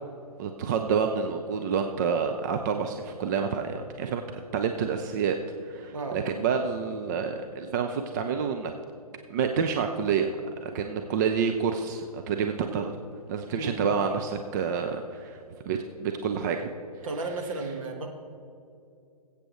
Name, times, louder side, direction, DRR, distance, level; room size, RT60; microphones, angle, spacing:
voice 1, 0.4-5.4 5.6-8.7 9.3-10.4 10.6-12.9 13.3-15.4 15.7-16.7 17.0-17.1, right 6 dB, 30° right, 5 dB, 0.5 m, -28 dB
voice 2, 17.0-18.1, right 3 dB, 55° right, 2 dB, 1.6 m, -33 dB
21.0 x 8.3 x 3.1 m, 2.6 s
figure-of-eight pair, 125°, 20 cm